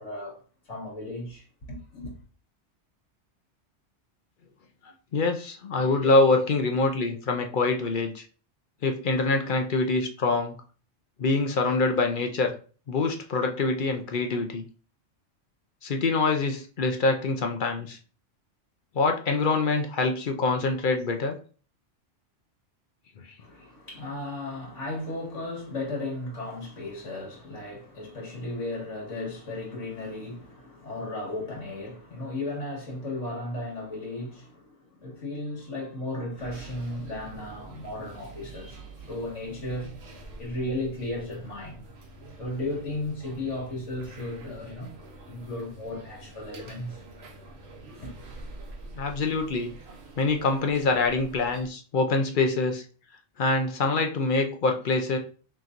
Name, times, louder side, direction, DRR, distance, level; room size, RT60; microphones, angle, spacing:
voice 1, 0.0-2.1 23.4-40.0 40.4-41.8 42.4-45.0 45.3-47.0 47.8-48.1, left 2 dB, 80° left, 2.1 m, -35 dB
voice 2, 4.8-8.2 8.8-10.5 11.2-12.6 12.9-14.6 15.8-18.0 18.9-21.3 48.9-49.7 50.2-52.8 53.4-55.2, left 3 dB, 50° left, 0.7 m, -25 dB
sound 1, 36.4-51.7, right 2 dB, 60° right, 1.1 m, -46 dB
5.7 x 3.0 x 2.5 m
omnidirectional pair, 1.2 m